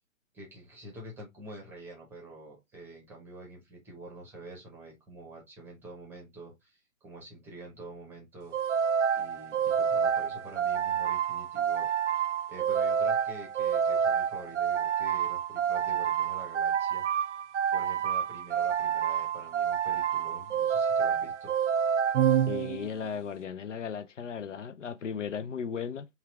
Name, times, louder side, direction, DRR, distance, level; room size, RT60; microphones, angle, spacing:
voice 1, 0.3-8.6 9.1-17.1 17.7-21.5, right 2 dB, 5° right, 0.8 m, -47 dB
sound 1, 8.5-23.1, right 8 dB, 65° right, 0.5 m, -28 dB
voice 2, 22.5-26.1, left 7 dB, 65° left, 0.6 m, -36 dB
5.6 x 2.4 x 3.1 m
figure-of-eight pair, 140°, 40 cm